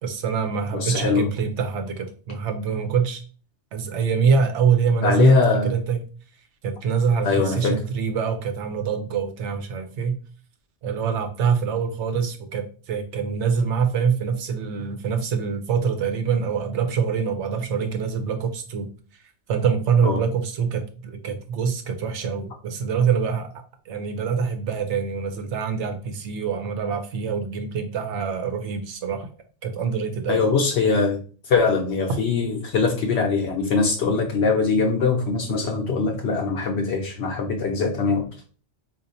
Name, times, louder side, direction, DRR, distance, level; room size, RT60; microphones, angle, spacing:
voice 1, 0.0-3.2 3.7-5.4 5.6-6.0 6.6-10.2 10.8-18.9 19.5-23.5 23.9-29.3 29.6-30.4, right 6 dB, 75° right, 6 dB, 0.9 m, -24 dB
voice 2, 0.7-1.3 5.0-5.7 7.2-7.7 20.0-20.2 30.3-38.2, left 4 dB, 70° left, 1 dB, 0.8 m, -22 dB
4.0 x 2.5 x 2.6 m, 0.38 s
omnidirectional pair, 1.2 m